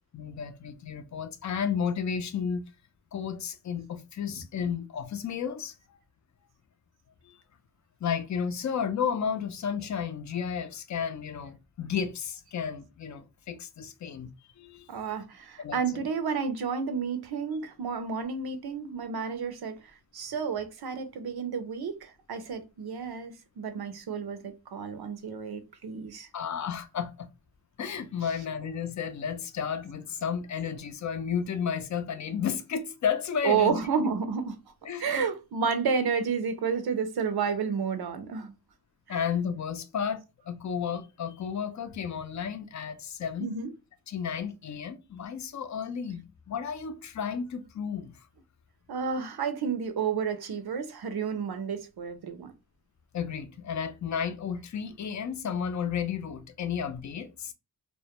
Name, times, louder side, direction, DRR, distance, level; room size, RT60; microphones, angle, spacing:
voice 1, 0.1-2.7 3.1-5.7 8.0-14.3 14.6-14.9 15.6-15.8 26.3-27.3 27.8-33.8 34.8-35.0 39.1-43.7 44.1-48.1 53.1-57.5, left 7 dB, 50° left, 0.4 m, -32 dB
voice 2, 14.9-19.7 20.1-26.3 33.4-34.6 35.0-38.5 43.4-43.7 48.9-52.5, right 6 dB, 75° right, 0.5 m, -31 dB
2.2 x 2.1 x 2.8 m
wide cardioid pair, 65°, 38 cm